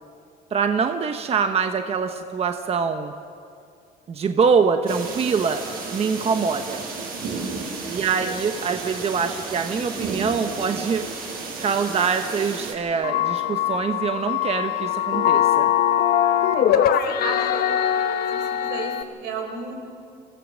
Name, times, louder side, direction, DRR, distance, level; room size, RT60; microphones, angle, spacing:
voice 1, 0.5-3.1 4.1-5.6 5.9-6.8 7.9-11.0 11.6-15.7, right 5 dB, 35° right, 6 dB, 1.1 m, -24 dB
sound 1, 4.9-12.7, right 4 dB, 60° right, 6.4 m, -33 dB
voice 2, 8.0-8.4 16.5-17.6 18.3-19.9, right 4 dB, 90° right, 2 dB, 4.3 m, -35 dB
sound 2, 13.0-19.0, left 10 dB, 65° left, 1.0 m, -22 dB
27.5 x 15.5 x 6.4 m, 2.3 s
cardioid pair, 110°, 17 cm